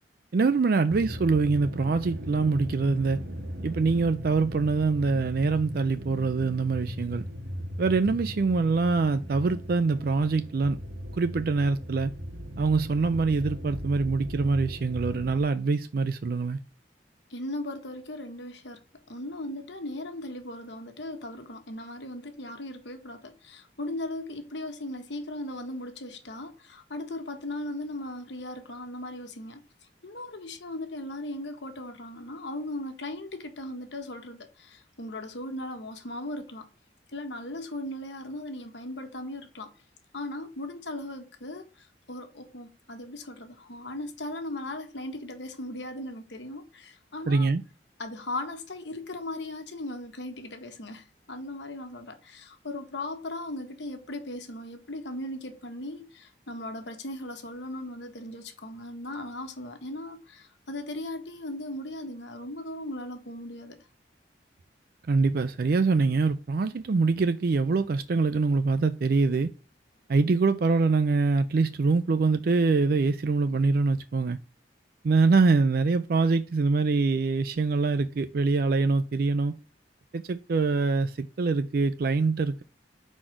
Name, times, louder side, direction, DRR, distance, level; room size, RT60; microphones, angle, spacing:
voice 1, 0.3-3.2 3.6-7.2 7.8-10.8 11.1-12.1 12.6-16.6 47.3-47.6 65.1-69.5 70.1-74.4 75.0-79.6 80.1-82.6, right 4 dB, 55° right, 0.4 m, -24 dB
sound 1, 0.9-15.4, equal, 75° right, 1.3 m, -38 dB
voice 2, 17.3-18.8 19.1-29.6 30.0-36.7 37.1-39.7 40.1-47.5 48.0-63.8, left 1 dB, 75° left, 1.3 m, -38 dB
5.0 x 4.1 x 5.9 m
head